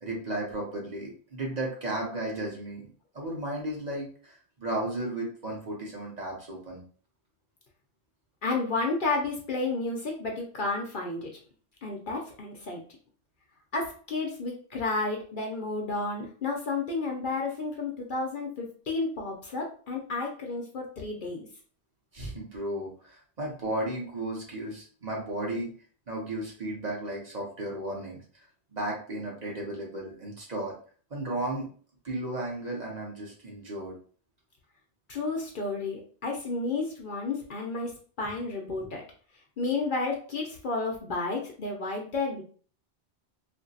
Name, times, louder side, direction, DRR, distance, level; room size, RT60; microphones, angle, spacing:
voice 1, 0.0-2.9 3.1-6.8 22.1-25.7 26.1-28.2 28.7-30.8 31.1-31.7 32.0-33.9, right 1 dB, 45° right, -2 dB, 0.9 m, -34 dB
voice 2, 8.4-11.3 11.8-12.8 13.7-21.5 35.1-37.9 38.2-39.0 39.6-42.4, left 3 dB, 55° left, 0 dB, 0.7 m, -31 dB
2.8 x 2.5 x 2.7 m, 0.43 s
omnidirectional pair, 1.1 m